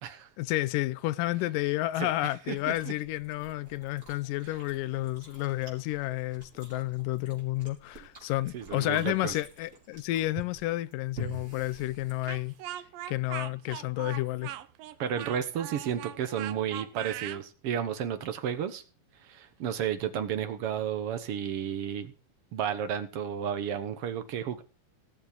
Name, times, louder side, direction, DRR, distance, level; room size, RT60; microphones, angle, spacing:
voice 1, 0.4-12.6 13.1-14.5, left 17 dB, 80° left, 2.3 m, -31 dB
Chewing mastication, 2.5-12.7, right 1 dB, 20° right, 4.6 m, -48 dB
voice 2, 8.5-9.3 15.0-18.8 19.2-22.1 22.5-24.6, right 9 dB, 65° right, 1.5 m, -32 dB
Speech, 12.3-17.4, right 13 dB, 85° right, 2.5 m, -40 dB
18.0 x 7.3 x 5.2 m
omnidirectional pair, 3.9 m